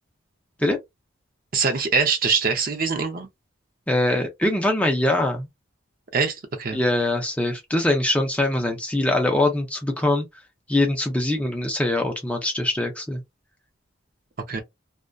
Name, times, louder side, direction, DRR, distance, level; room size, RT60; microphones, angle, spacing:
voice 1, 1.5-3.3 6.1-6.8 14.5-14.6, right 5 dB, 45° right, 0.5 m, -23 dB
voice 2, 3.9-5.5 6.7-10.3 10.7-13.2, left 1 dB, 5° left, 0.4 m, -23 dB
2.5 x 2.2 x 2.2 m
head